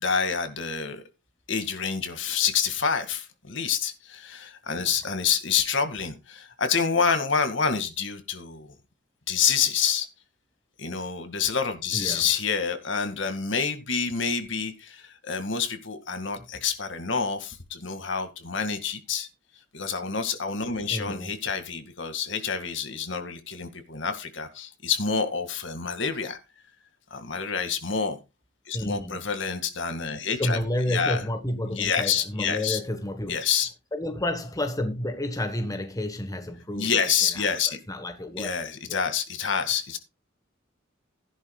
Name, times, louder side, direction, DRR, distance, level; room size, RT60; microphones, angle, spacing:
voice 1, 0.0-1.0 1.5-8.7 9.3-10.1 10.8-19.3 19.7-26.4 27.1-28.2 28.7-30.6 30.9-31.2 31.7-32.8 33.3-33.7 36.7-37.8 38.4-40.0, left 6 dB, 65° left, 2.1 m, -27 dB
voice 2, 11.9-12.3 20.9-21.3 28.7-29.2 30.4-33.4 33.9-38.5 38.9-39.0, left 1 dB, 20° left, 1.4 m, -31 dB
16.0 x 11.0 x 2.3 m
head